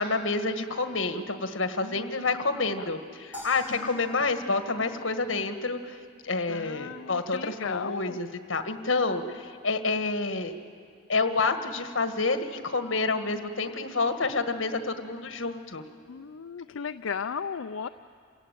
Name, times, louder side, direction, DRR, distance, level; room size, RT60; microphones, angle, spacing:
voice 1, 0.0-5.9 6.2-10.5 11.1-15.8, left 3 dB, 70° left, 8 dB, 1.5 m, -28 dB
voice 2, 1.8-2.4 3.7-4.2 6.5-8.2 16.1-17.9, left 6 dB, 85° left, 8 dB, 0.5 m, -36 dB
sound 1, 3.3-5.7, left 1 dB, 10° right, 5.7 m, -46 dB
27.5 x 16.5 x 9.2 m, 2.3 s
head